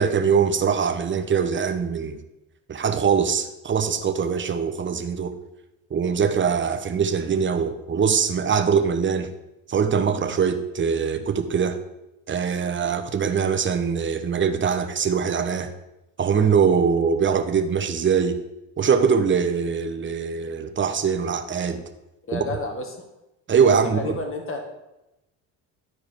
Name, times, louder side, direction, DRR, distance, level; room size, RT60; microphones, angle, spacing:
voice 1, 0.0-2.2 2.7-5.3 5.9-9.3 9.7-11.8 12.3-15.7 16.2-18.4 18.8-21.8 22.3-22.4 23.5-24.1, right 6 dB, 30° right, 8 dB, 0.9 m, -22 dB
voice 2, 22.3-22.9 23.8-24.6, left 3 dB, 35° left, 2 dB, 2.0 m, -31 dB
12.5 x 4.8 x 4.6 m, 0.93 s
cardioid pair, 105°, 39 cm